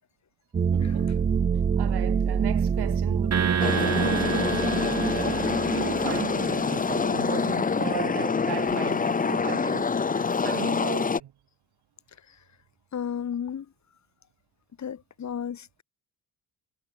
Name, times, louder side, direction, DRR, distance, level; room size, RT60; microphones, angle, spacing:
sound 1, 0.5-7.0 7.3-7.5 8.7-8.8, right 6 dB, 25° right, 0.4 m, -27 dB
voice 1, 0.7-1.3 1.8-11.3, right 12 dB, 80° right, 3.4 m, -36 dB
sound 2, 3.3-6.8, right 7 dB, 40° right, 4.6 m, -31 dB
sound 3, 3.6-11.2, left 5 dB, 20° left, 0.9 m, -26 dB
voice 2, 12.9-13.6 14.8-15.8, left 8 dB, 45° left, 2.8 m, -33 dB
wide cardioid pair, 170°, 38 cm